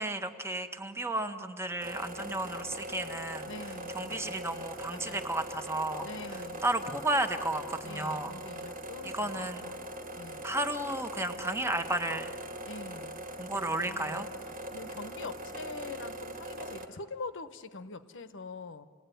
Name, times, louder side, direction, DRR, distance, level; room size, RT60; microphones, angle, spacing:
voice 1, 0.0-3.5 3.9-6.1 6.6-8.3 9.0-9.6 10.4-12.3 13.4-14.3, right 2 dB, 10° right, 7 dB, 1.1 m, -33 dB
sound 1, 1.8-16.9, right 1 dB, 40° right, 1.8 m, -41 dB
voice 2, 3.4-4.5 4.9-5.4 6.0-6.9 7.8-9.9 10.2-10.6 12.7-14.3 14.7-18.8, left 3 dB, 60° left, 10 dB, 1.0 m, -45 dB
29.0 x 18.5 x 9.2 m, 2.2 s
head